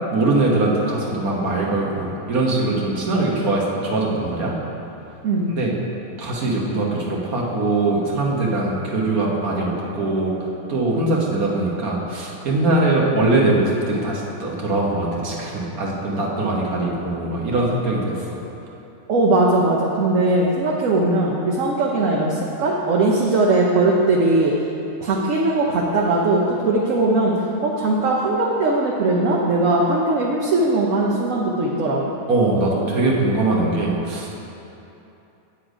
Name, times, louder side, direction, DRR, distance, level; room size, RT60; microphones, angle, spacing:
voice 1, 0.1-4.5 5.5-5.7 6.2-10.3 10.7-18.1 32.3-34.4, right 2 dB, 80° right, -3 dB, 1.7 m, -21 dB
voice 2, 19.1-24.5 25.0-27.3 27.6-32.1, right 2 dB, 65° right, -2 dB, 1.2 m, -19 dB
8.7 x 8.0 x 5.0 m, 2.9 s
omnidirectional pair, 1.5 m